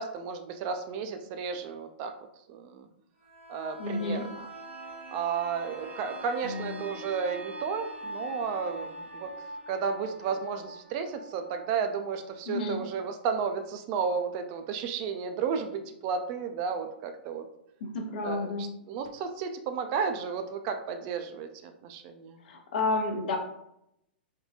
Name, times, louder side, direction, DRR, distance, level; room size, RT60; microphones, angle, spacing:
voice 1, 0.0-2.9 3.5-4.5 5.1-9.3 9.7-17.5 18.2-18.5 18.9-22.4, right 6 dB, 40° right, 6 dB, 0.3 m, -33 dB
sound 1, 3.2-12.8 13.2-13.3, right 1 dB, 90° right, 1.0 m, -43 dB
voice 2, 3.8-4.2 6.4-6.8 12.5-12.8 17.8-18.7 22.4-23.4, left 3 dB, 60° left, 3 dB, 0.6 m, -31 dB
3.5 x 2.3 x 2.7 m, 0.79 s
figure-of-eight pair, 110°, 6 cm